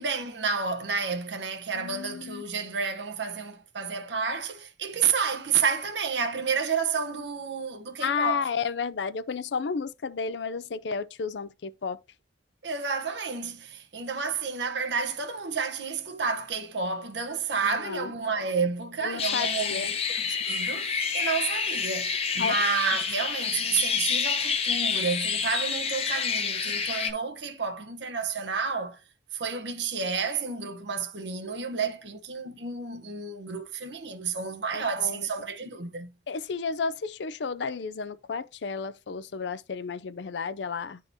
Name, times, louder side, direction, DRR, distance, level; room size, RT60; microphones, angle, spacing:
voice 1, 0.0-8.5 12.6-29.0 29.3-36.1, right 5 dB, 80° right, 0.9 m, -30 dB
voice 2, 1.7-2.4 8.0-12.0 17.6-18.1 19.0-19.9 22.4-22.6 34.7-35.3 36.3-41.0, left 5 dB, 75° left, 0.5 m, -32 dB
sound 1, 19.2-27.1, left 6 dB, 35° left, 0.8 m, -28 dB
11.0 x 3.8 x 2.7 m
head